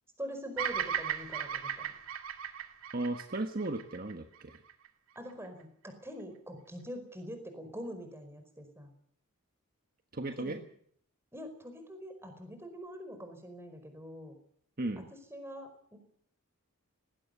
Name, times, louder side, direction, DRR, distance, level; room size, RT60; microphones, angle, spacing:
voice 1, 0.2-1.9 5.1-8.9 10.4-10.6 11.3-14.4 15.0-16.0, equal, 10° right, 7 dB, 4.9 m, -44 dB
Bird vocalization bird call bird song, 0.6-4.9, right 8 dB, 65° right, 2.1 m, -37 dB
voice 2, 2.9-4.6 10.1-10.6 14.8-15.1, right 2 dB, 40° right, 6 dB, 1.4 m, -35 dB
19.5 x 16.5 x 8.3 m, 0.63 s
head